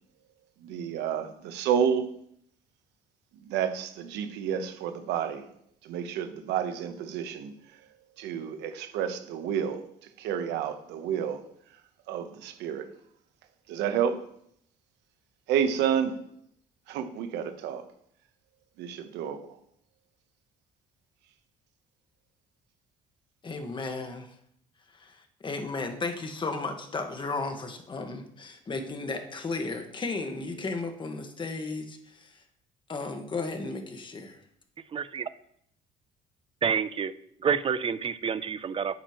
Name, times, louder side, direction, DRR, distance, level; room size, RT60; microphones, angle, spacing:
voice 1, 0.6-2.1 3.4-5.4 5.8-7.5 8.2-9.8 10.2-11.4 12.1-12.9 13.7-14.2 15.5-16.2 16.9-17.8 18.8-19.4, right 8 dB, 90° right, 1.1 m, -30 dB
voice 2, 23.4-24.3 25.0-25.1 25.4-32.3 32.9-34.4, left 3 dB, 30° left, 1.6 m, -34 dB
voice 3, 34.9-35.3 36.6-37.1 37.4-39.0, right 7 dB, 30° right, 0.6 m, -28 dB
11.5 x 8.8 x 3.1 m
cardioid pair, 110°, 17 cm